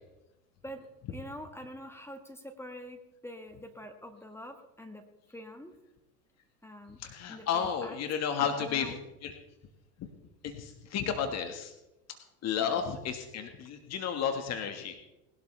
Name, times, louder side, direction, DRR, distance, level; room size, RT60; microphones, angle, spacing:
voice 1, 0.6-5.0 5.3-5.7 6.6-7.0 7.3-8.0 8.4-9.0 12.6-12.8, equal, 5° left, 5 dB, 1.7 m, -45 dB
voice 2, 7.0-8.9 9.2-9.4 10.0-10.1 10.4-11.7 12.1-12.2 12.4-14.9, left 7 dB, 35° left, 6 dB, 1.8 m, -32 dB
20.0 x 12.0 x 3.4 m, 0.94 s
hypercardioid pair, 95°, 43 cm